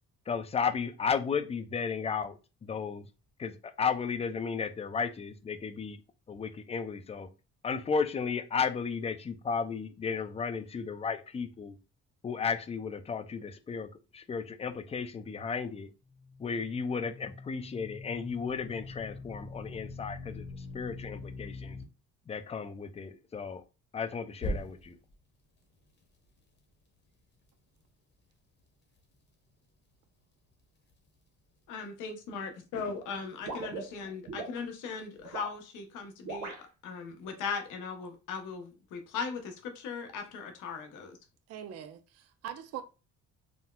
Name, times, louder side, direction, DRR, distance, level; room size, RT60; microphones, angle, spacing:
voice 1, 0.3-3.1 3.4-6.0 6.3-7.3 7.6-11.8 12.2-15.9 16.4-21.8 22.3-23.6 23.9-25.0, left 5 dB, 20° left, 0.3 m, -34 dB
sound 1, 16.0-21.8 24.4-25.1, left 2 dB, 35° left, 0.9 m, -42 dB
voice 2, 31.7-41.2, left 5 dB, 90° left, 0.8 m, -38 dB
sound 2, 33.5-34.6 35.2-35.6 36.2-36.6, right 3 dB, 80° right, 1.0 m, -39 dB
voice 3, 41.5-42.8, right 9 dB, 55° right, 0.5 m, -42 dB
4.0 x 2.1 x 2.2 m
cardioid pair, 90°, 30 cm